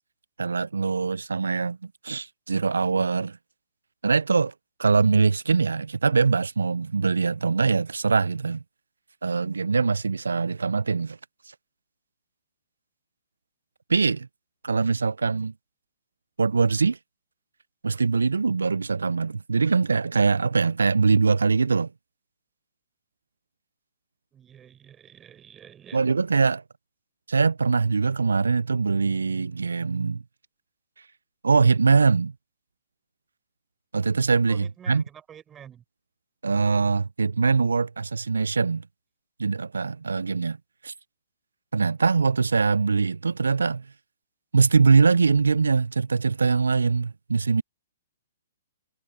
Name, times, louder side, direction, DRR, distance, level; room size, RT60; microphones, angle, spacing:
voice 1, 0.4-3.3 4.0-4.5 4.8-8.6 9.2-11.2 13.9-14.3 14.6-15.5 16.4-17.0 17.8-21.9 25.9-26.6 27.3-30.2 31.4-32.3 33.9-35.0 36.4-38.8 39.4-40.6 40.8-40.9 41.7-43.8 44.5-47.6, right 4 dB, 80° right, 0.4 m, -22 dB
voice 2, 24.3-26.0 34.5-35.8, right 9 dB, 20° right, 6.6 m, -48 dB
figure-of-eight pair, 125°, 0 cm